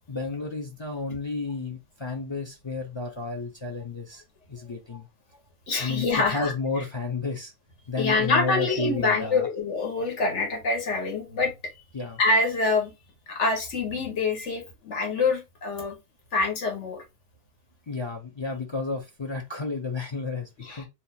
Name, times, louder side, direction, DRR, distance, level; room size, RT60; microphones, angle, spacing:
voice 1, 0.1-4.2 4.5-5.1 5.8-7.5 7.9-9.5 11.9-12.2 17.9-20.8, left 3 dB, 35° left, 0.4 m, -32 dB
voice 2, 5.7-6.5 8.0-11.5 12.2-12.9 13.3-16.0 16.3-17.0 20.6-20.8, left 3 dB, 80° left, 1.4 m, -25 dB
2.8 x 2.4 x 4.0 m
omnidirectional pair, 1.2 m